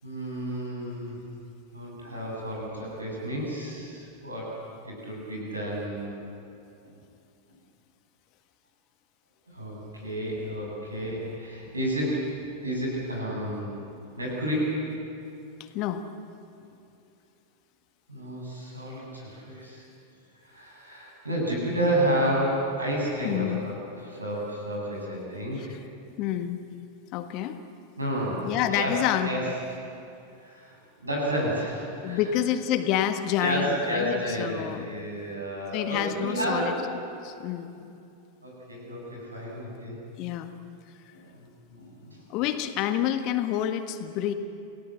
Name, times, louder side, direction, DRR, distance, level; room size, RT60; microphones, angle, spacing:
voice 1, 0.0-1.2 1.7-4.5 4.9-6.1 9.5-12.3 12.6-13.7 14.2-14.8 18.1-19.8 20.4-23.8 24.0-25.6 28.0-29.0 29.2-29.4 30.4-30.8 31.0-32.2 33.4-36.7 38.4-40.0 41.1-42.2, right 1 dB, 80° right, -2 dB, 7.4 m, -31 dB
voice 2, 23.2-23.6 25.3-25.7 26.2-26.6 27.1-27.6 28.4-29.5 32.0-34.8 35.7-36.7 37.2-37.9 40.2-40.5 42.3-44.3, left 11 dB, 40° left, 8 dB, 1.5 m, -28 dB
28.5 x 17.5 x 8.0 m, 2.6 s
figure-of-eight pair, 90°, 0 cm